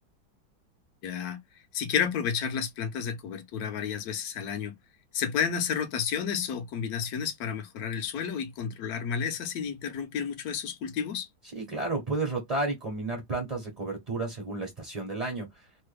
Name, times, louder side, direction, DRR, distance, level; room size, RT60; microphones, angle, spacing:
voice 1, 1.0-1.4 1.7-4.8 5.1-11.3, left 7 dB, 60° left, 1.0 m, -31 dB
voice 2, 11.5-15.6, right 3 dB, 35° right, 0.6 m, -32 dB
3.2 x 2.2 x 3.2 m
omnidirectional pair, 2.2 m